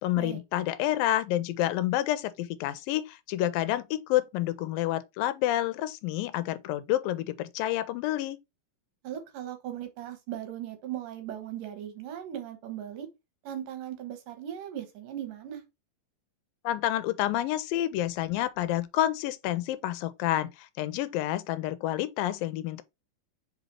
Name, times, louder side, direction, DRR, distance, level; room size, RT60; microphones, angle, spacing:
voice 1, 0.0-8.4 16.6-22.8, left 13 dB, 85° left, 2.3 m, -29 dB
voice 2, 9.0-13.1 13.4-15.6, right 11 dB, 70° right, 2.6 m, -38 dB
5.2 x 4.1 x 4.4 m
omnidirectional pair, 4.2 m